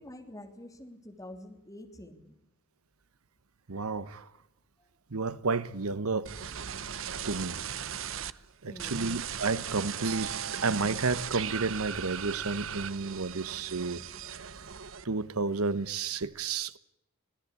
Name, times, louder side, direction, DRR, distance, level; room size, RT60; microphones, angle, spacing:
voice 1, 0.0-2.3 4.8-4.9 8.6-9.1, left 1 dB, 15° left, 3.2 m, -47 dB
voice 2, 3.7-4.3 5.1-6.3 7.2-7.6 8.6-14.0 15.0-16.8, right 4 dB, 85° right, 1.1 m, -31 dB
sound 1, 6.3-8.3 8.8-15.3 15.7-16.2, right 8 dB, 65° right, 0.9 m, -38 dB
25.0 x 17.5 x 8.4 m
head